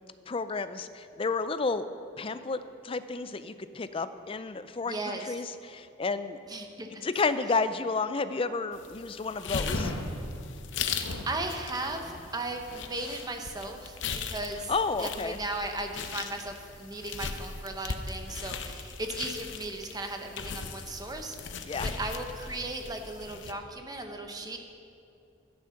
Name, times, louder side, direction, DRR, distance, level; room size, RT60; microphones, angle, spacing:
voice 1, 0.3-1.9 2.2-6.4 7.0-9.9 14.7-15.4 21.7-21.9, left 4 dB, 30° left, 12 dB, 0.4 m, -31 dB
voice 2, 4.9-5.3 6.5-7.1 10.9-14.0 14.2-14.7 15.0-24.6, right 2 dB, 20° right, 4 dB, 1.0 m, -36 dB
sound 1, 8.7-23.5, left 5 dB, 65° left, 0.7 m, -38 dB
Dog, 9.7-15.1, left 1 dB, 85° left, 1.2 m, -41 dB
12.0 x 10.5 x 5.8 m, 2.7 s
head